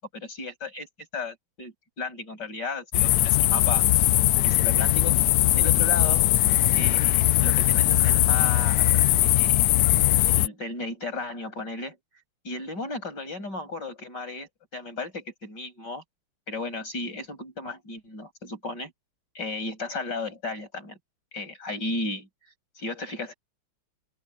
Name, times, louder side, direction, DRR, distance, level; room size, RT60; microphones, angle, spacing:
voice 1, 0.1-0.9 1.1-3.8 4.4-5.2 5.5-6.2 6.7-9.8 10.3-12.0 12.4-16.0 16.5-18.9 19.3-21.0 21.3-22.3 22.8-23.3, left 3 dB, 55° left, 8.0 m, -35 dB
sound 1, 2.9-10.5, left 15 dB, 85° left, 0.8 m, -20 dB
open air
omnidirectional pair, 2.2 m